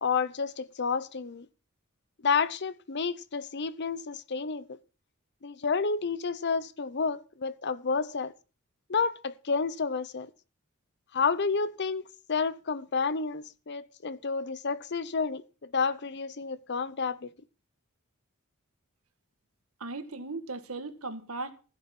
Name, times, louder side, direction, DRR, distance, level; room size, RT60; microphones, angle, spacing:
voice 1, 0.0-1.5 2.2-4.8 5.4-8.3 8.9-10.3 11.1-17.3, left 5 dB, 55° left, 0.8 m, -30 dB
voice 2, 19.8-21.5, right 3 dB, 80° right, 1.7 m, -37 dB
15.5 x 7.8 x 5.9 m
head